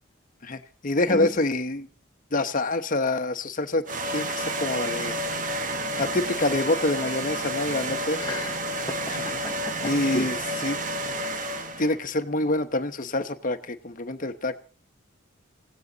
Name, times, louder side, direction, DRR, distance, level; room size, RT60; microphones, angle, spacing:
voice 1, 0.4-1.9 2.3-3.8 4.1-5.2 6.0-8.2 9.1-9.2 9.8-10.8 11.8-14.5, left 2 dB, 40° left, 9 dB, 1.1 m, -26 dB
sound 1, 3.9-12.0, right 1 dB, 40° right, 1.4 m, -30 dB
voice 2, 8.2-10.3, left 2 dB, 20° left, 3 dB, 1.0 m, -34 dB
19.5 x 16.0 x 4.0 m, 0.39 s
head